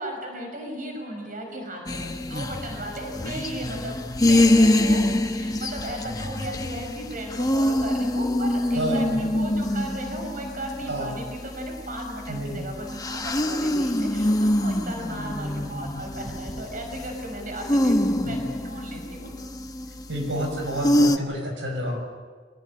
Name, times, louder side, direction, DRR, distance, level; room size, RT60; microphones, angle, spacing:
voice 1, 0.0-4.0 4.3-5.0 5.3-18.4 18.6-19.3, right 1 dB, 50° right, 3 dB, 5.7 m, -36 dB
sound 1, 1.9-21.2, left 1 dB, 20° left, 1.3 m, -25 dB
voice 2, 8.7-9.3 10.9-11.1 12.3-12.6 18.2-18.4 20.1-22.0, right 1 dB, 80° right, 2 dB, 6.5 m, -29 dB
25.5 x 18.5 x 9.9 m, 1.5 s
head